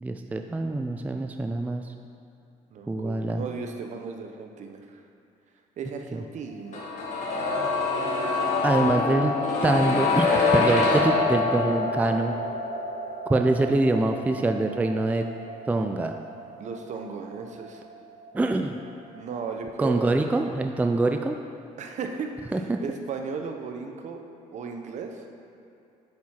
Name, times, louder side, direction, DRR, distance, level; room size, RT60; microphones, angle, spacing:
voice 1, 0.0-1.8 2.9-3.4 6.1-6.2 8.6-9.3 9.6-12.3 13.3-15.2 15.7-16.1 18.3-18.8 19.8-21.4 22.5-22.8, right 2 dB, 10° right, 5 dB, 0.3 m, -24 dB
voice 2, 2.7-5.0 5.8-6.8 16.6-17.8 19.1-20.1 21.8-24.2 24.5-25.2, right 5 dB, 55° right, 4 dB, 0.8 m, -36 dB
sound 1, 6.7-18.6 18.8-18.9, left 3 dB, 55° left, 1.5 m, -26 dB
9.3 x 4.6 x 4.4 m, 2.6 s
cardioid pair, 100°, 14 cm